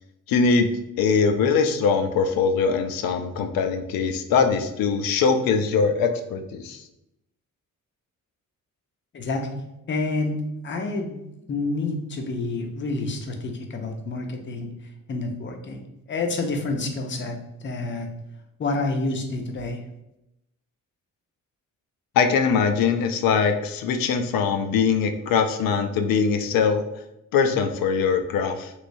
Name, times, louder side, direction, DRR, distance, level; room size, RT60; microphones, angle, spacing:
voice 1, 0.3-0.7 1.0-6.8 22.1-26.8 27.3-28.7, left 5 dB, 85° left, 7 dB, 0.5 m, -22 dB
voice 2, 9.1-9.5 9.9-11.2 11.5-14.7 15.1-15.8 16.1-17.4 17.6-18.1 18.6-19.8, left 3 dB, 35° left, 4 dB, 0.5 m, -28 dB
3.1 x 3.1 x 2.6 m, 0.87 s
cardioid pair, 140°, 34 cm